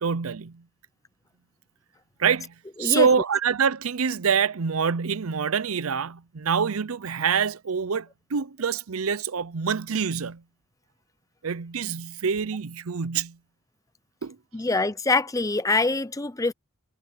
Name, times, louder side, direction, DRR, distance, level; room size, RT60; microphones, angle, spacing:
voice 1, 0.0-0.6 2.2-10.4 11.4-13.4 14.2-14.4, right 6 dB, 90° right, 0.7 m, -26 dB
voice 2, 2.8-3.1 14.5-16.5, left 3 dB, 15° left, 0.6 m, -24 dB
head